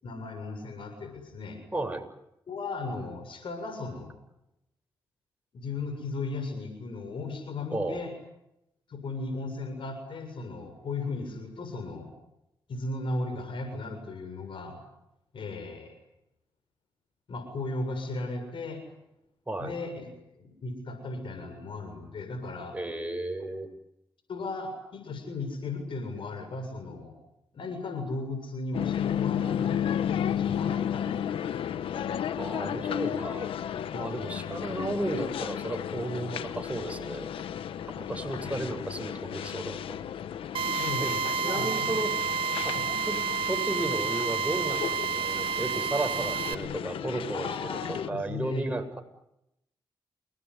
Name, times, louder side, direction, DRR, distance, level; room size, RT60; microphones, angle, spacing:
voice 1, 0.0-1.6 2.5-4.1 5.5-8.1 8.9-12.1 12.7-14.8 15.3-15.9 17.3-18.8 19.6-20.1 20.4-22.8 24.3-27.1 27.5-32.1 38.4-38.8 40.8-42.0 42.7-42.9 47.3-48.7, left 3 dB, 70° left, 6 dB, 7.2 m, -36 dB
voice 2, 1.7-2.0 7.7-8.0 19.5-19.7 22.7-23.7 32.4-33.6 33.9-37.3 38.0-40.0 41.0-41.1 41.4-42.1 42.6-42.7 43.1-43.2 43.5-47.8 48.1-49.0, right 2 dB, 15° right, 5 dB, 7.4 m, -33 dB
sound 1, 28.7-48.1, left 9 dB, 85° left, 1.3 m, -33 dB
Drill, 40.5-46.5, right 6 dB, 80° right, 2.0 m, -30 dB
29.0 x 20.0 x 9.9 m, 0.85 s
cardioid pair, 50°, 9 cm